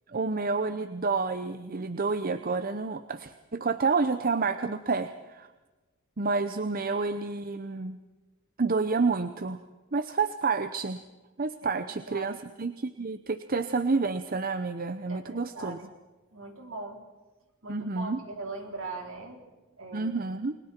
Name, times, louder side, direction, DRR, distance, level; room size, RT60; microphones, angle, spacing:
voice 1, 0.1-5.5 6.2-8.0 8.6-9.6 9.9-11.0 11.4-15.8 17.7-18.2 19.9-20.6, right 4 dB, 45° right, 11 dB, 0.8 m, -29 dB
voice 2, 15.1-15.9 16.3-17.0 17.6-19.4 19.8-20.1, right 3 dB, 65° right, 2 dB, 4.2 m, -40 dB
29.5 x 21.5 x 4.5 m, 1.2 s
head